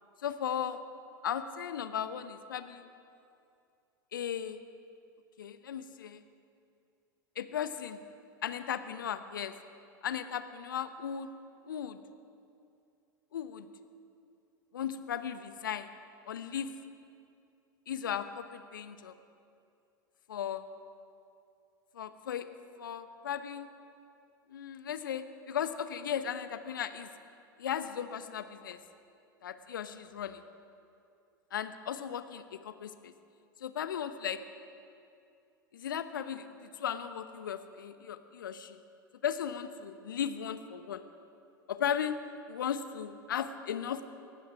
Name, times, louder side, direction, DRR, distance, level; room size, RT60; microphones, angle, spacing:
voice 1, 0.2-0.8 1.2-2.9 4.1-4.6 5.4-6.2 7.4-8.0 8.4-9.5 10.0-11.3 11.7-12.0 13.3-13.7 14.7-15.9 16.3-16.7 17.9-19.1 20.3-20.6 21.9-22.5 22.8-23.7 24.5-27.1 27.6-28.8 29.4-30.4 31.5-33.1 33.6-34.4 35.7-38.8 39.2-41.0 41.7-42.2 42.5-44.1, left 9 dB, 70° left, 11 dB, 1.0 m, -36 dB
19.0 x 15.5 x 4.9 m, 2.5 s
figure-of-eight pair, 85°, 11 cm